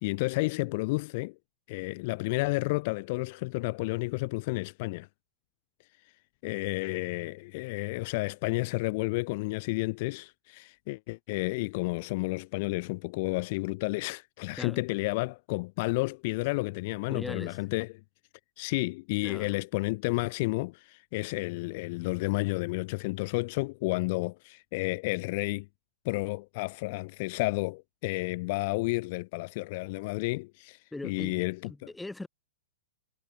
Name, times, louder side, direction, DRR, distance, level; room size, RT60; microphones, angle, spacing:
voice 1, 0.0-1.3 1.7-5.1 6.4-17.9 18.6-25.7 26.0-31.9, left 24 dB, 50° left, 1.3 m, -31 dB
voice 2, 17.1-17.6 19.2-19.6 30.9-31.4 31.6-32.3, left 2 dB, 5° left, 5.8 m, -40 dB
hypercardioid pair, 110°, 0 cm